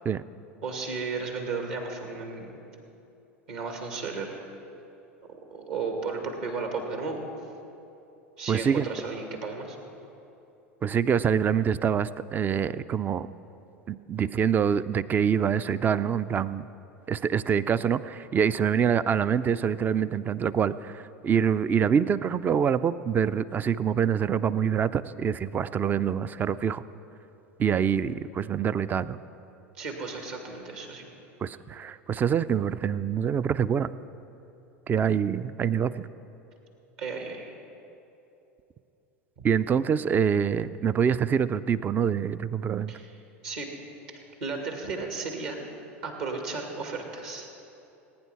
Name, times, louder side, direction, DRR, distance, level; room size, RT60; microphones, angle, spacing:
voice 1, 0.6-2.6 3.5-4.4 5.3-7.2 8.4-9.8 29.8-31.1 37.0-37.5 42.9-43.1 43.4-43.7 44.4-45.6 46.0-47.5, right 4 dB, 60° right, 3 dB, 2.3 m, -34 dB
voice 2, 8.5-8.9 10.8-13.3 13.9-16.6 17.1-26.8 27.6-29.2 31.4-33.9 34.9-36.1 39.4-42.9, right 7 dB, 25° right, 16 dB, 0.4 m, -25 dB
19.0 x 9.6 x 5.8 m, 2.9 s
figure-of-eight pair, 75°, 7 cm